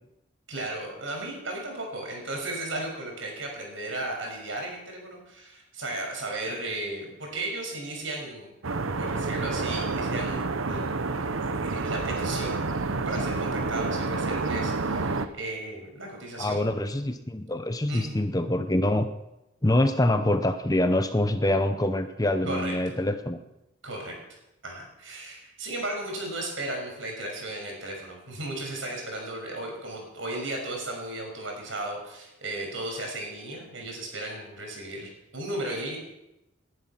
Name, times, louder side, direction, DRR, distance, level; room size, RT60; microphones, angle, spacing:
voice 1, 0.5-8.5 9.0-11.0 11.4-12.6 12.8-16.7 17.9-18.2 22.4-23.0 23.8-24.1 24.6-36.0, right 2 dB, 70° right, 1 dB, 6.1 m, -35 dB
sound 1, 8.6-15.3, right 3 dB, 90° right, 0.9 m, -29 dB
voice 2, 16.4-19.1 19.6-23.4, left 1 dB, 20° left, 9 dB, 0.7 m, -25 dB
20.0 x 11.0 x 5.9 m, 0.91 s
head